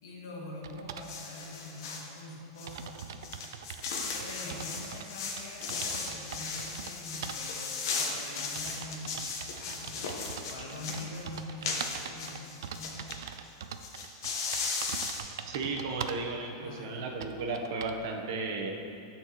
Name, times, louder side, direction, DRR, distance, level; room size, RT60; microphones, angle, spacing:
voice 1, 0.0-3.4 4.1-10.1 10.5-13.0 16.6-17.1, left 1 dB, 90° left, -2 dB, 1.5 m, -44 dB
sound 1, 0.6-1.1 2.0-2.1 2.3-2.4 2.7-5.1 5.4-6.9 7.2-7.4 8.1-16.3 16.8-16.9 17.2-18.0, right 8 dB, 80° right, 0.4 m, -43 dB
sound 2, 1.0-2.1 2.6-13.2 13.4-13.5 13.7-15.2, left 4 dB, 65° left, 1.0 m, -36 dB
voice 2, 15.5-18.8, right 3 dB, 65° right, 1 dB, 0.9 m, -34 dB
13.0 x 4.4 x 3.0 m, 2.6 s
supercardioid pair, 160°, 2 cm